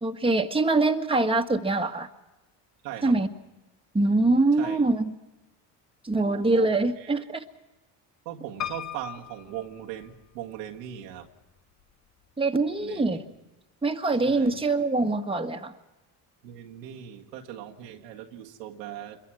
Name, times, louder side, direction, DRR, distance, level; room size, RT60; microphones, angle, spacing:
voice 1, 0.0-2.1 3.0-3.3 3.9-5.1 6.0-7.4 12.4-13.2 13.8-15.7, right 2 dB, 10° right, 1.6 m, -24 dB
voice 2, 2.8-3.2 4.6-4.9 6.2-7.1 8.3-11.3 12.8-13.2 14.2-14.6 16.4-19.2, right 11 dB, 90° right, 1.8 m, -39 dB
Piano, 8.6-10.6 11.2-11.9 12.2-12.3 12.5-12.6, left 11 dB, 35° left, 0.9 m, -38 dB
26.0 x 22.5 x 6.3 m
hypercardioid pair, 70°, 47 cm